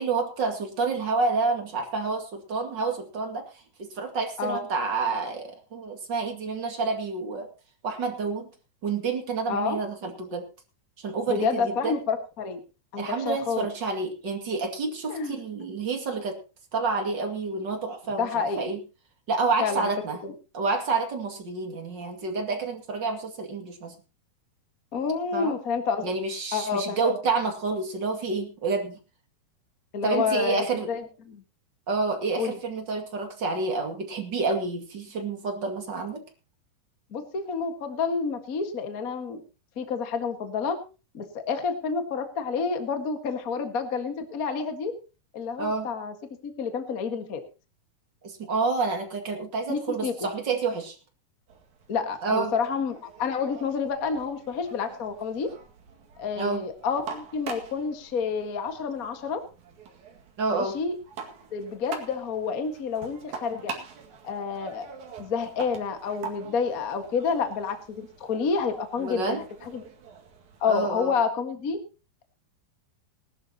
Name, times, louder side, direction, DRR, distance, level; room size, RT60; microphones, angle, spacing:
voice 1, 0.0-3.5 3.8-7.5 7.8-8.5 8.8-10.5 11.0-12.0 13.0-16.4 16.7-18.8 19.3-20.2 20.5-23.9 25.3-25.6 26.0-29.0 30.0-30.9 31.9-36.2 45.6-45.9 48.2-51.0 52.2-52.5 56.4-56.6 60.4-60.8 69.0-69.4 70.7-71.1, right 4 dB, 35° right, 3 dB, 2.2 m, -29 dB
voice 2, 11.3-12.6 12.9-13.7 15.1-15.4 18.2-18.7 19.6-19.9 20.2-20.3 24.9-26.1 26.5-27.2 29.9-31.4 32.4-32.6 37.1-39.4 39.8-40.8 41.1-44.9 45.3-46.1 46.4-47.4 49.7-50.3 51.9-55.5 56.2-59.4 60.5-60.9 61.5-63.7 64.2-64.9 65.2-69.8 70.6-71.8, left 5 dB, 70° left, 7 dB, 0.8 m, -29 dB
sound 1, 51.5-70.7, right 5 dB, 55° right, 3.1 m, -44 dB
19.5 x 12.5 x 2.9 m, 0.31 s
omnidirectional pair, 4.7 m